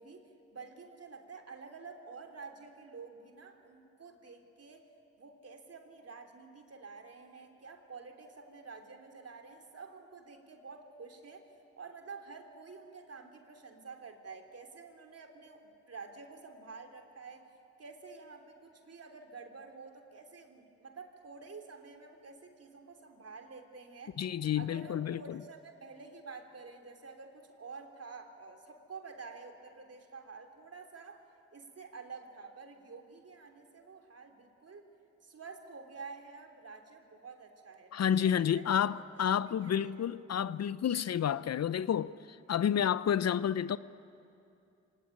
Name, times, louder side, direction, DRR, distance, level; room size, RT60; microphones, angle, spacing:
voice 1, 0.0-4.9 5.2-11.5 11.8-17.5 17.8-24.2 24.6-31.2 31.5-34.9 35.2-40.1, right 4 dB, 50° right, 3.3 m, -49 dB
voice 2, 24.2-25.4 37.9-43.8, left 9 dB, 55° left, 0.7 m, -30 dB
25.0 x 18.5 x 10.0 m
supercardioid pair, 45°, 31 cm